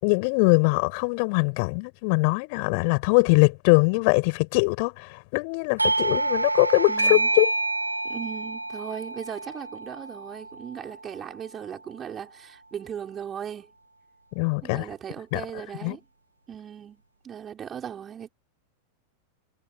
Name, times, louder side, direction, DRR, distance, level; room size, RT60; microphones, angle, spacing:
voice 1, 0.0-7.5 14.3-14.9 15.3-15.4 15.8-16.0, left 33 dB, 45° left, 5.5 m, -22 dB
Doorbell, 5.8-11.1, right 2 dB, 85° right, 1.5 m, -27 dB
voice 2, 6.9-7.3 8.0-13.7 14.6-16.0 16.5-18.3, right 8 dB, 25° right, 5.6 m, -38 dB
figure-of-eight pair, 90°, 0 cm